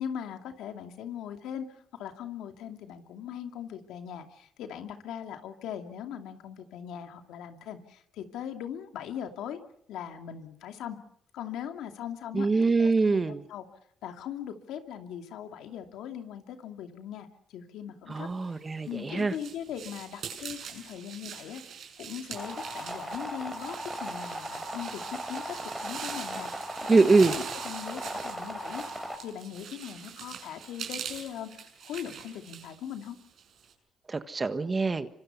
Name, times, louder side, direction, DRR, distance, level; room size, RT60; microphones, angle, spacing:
voice 1, 0.0-9.6 9.9-11.0 11.3-12.5 12.8-13.6 14.0-18.6 18.9-21.6 22.0-33.2, left 9 dB, 90° left, 5 dB, 2.5 m, -40 dB
voice 2, 12.3-13.4 18.1-19.3 26.9-27.4 34.1-35.1, right 3 dB, 30° right, 10 dB, 1.4 m, -24 dB
sound 1, 18.6-33.7, right 7 dB, 65° right, 6.3 m, -43 dB
sound 2, 22.4-29.2, right 1 dB, 5° right, 4.1 m, -38 dB
26.5 x 25.0 x 5.6 m, 0.66 s
cardioid pair, 90°, 0 cm